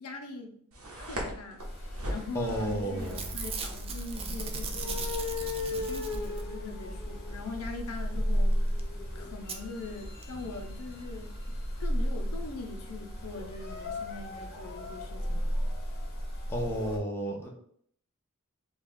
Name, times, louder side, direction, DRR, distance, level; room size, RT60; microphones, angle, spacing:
voice 1, 0.0-0.6 1.0-1.6 2.1-5.1 5.7-8.7 9.1-11.3 11.8-15.6, left 3 dB, 85° left, 4 dB, 0.6 m, -42 dB
sound 1, 0.7-14.2, equal, 70° right, 0.9 m, -44 dB
sound 2, 1.6-17.0, equal, 50° left, 0.8 m, -34 dB
voice 2, 2.3-3.4 16.5-17.5, right 1 dB, 10° left, -2 dB, 0.6 m, -32 dB
Packing tape duct tape / Tearing, 2.5-2.7 3.0-6.6 8.5-8.6 8.8-8.9 9.5-9.6 10.2-10.3 10.5-10.6, right 6 dB, 25° right, 0.3 m, -39 dB
3.0 x 2.3 x 3.7 m, 0.64 s
head